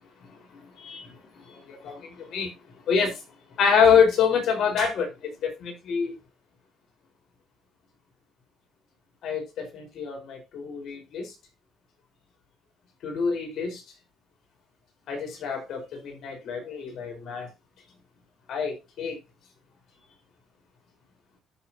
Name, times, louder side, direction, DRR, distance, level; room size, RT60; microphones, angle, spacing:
voice 1, 1.5-2.5 2.9-3.2 3.6-6.1 9.2-11.3 13.0-13.8 15.1-17.5 18.5-19.2, left 6 dB, 65° left, 4.7 m, -26 dB
13.0 x 6.7 x 2.9 m
cardioid pair, 95°, 0 cm